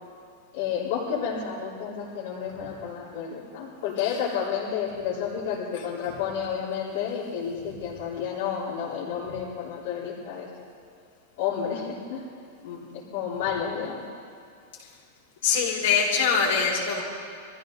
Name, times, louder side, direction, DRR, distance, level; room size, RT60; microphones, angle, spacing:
voice 1, 0.5-10.5 11.4-12.2 12.6-14.0, left 7 dB, 55° left, -8 dB, 3.8 m, -31 dB
voice 2, 15.4-17.0, left 6 dB, 70° left, -4 dB, 4.5 m, -23 dB
24.0 x 15.0 x 4.0 m, 2.4 s
supercardioid pair, 170°, 0 cm